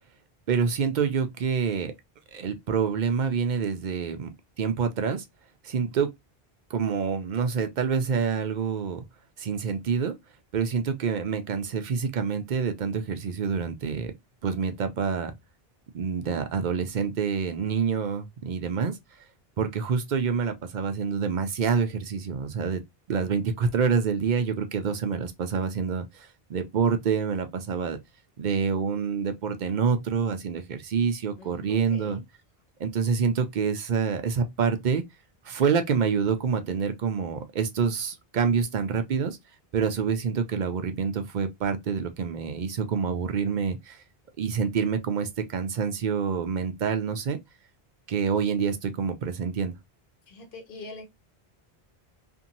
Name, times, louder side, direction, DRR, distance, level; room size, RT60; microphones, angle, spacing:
voice 1, 0.5-1.9 2.3-4.3 4.6-5.2 5.6-6.1 6.7-9.0 9.4-10.1 10.5-14.1 14.4-15.3 15.9-19.0 19.6-22.8 23.1-28.0 28.4-32.2 32.8-35.0 35.4-39.4 39.7-44.0 44.4-47.4 48.1-49.7, right 6 dB, 55° right, 0.6 m, -27 dB
voice 2, 31.4-32.2 50.3-51.1, left 2 dB, 60° left, 1.0 m, -43 dB
2.7 x 2.6 x 2.6 m
omnidirectional pair, 1.0 m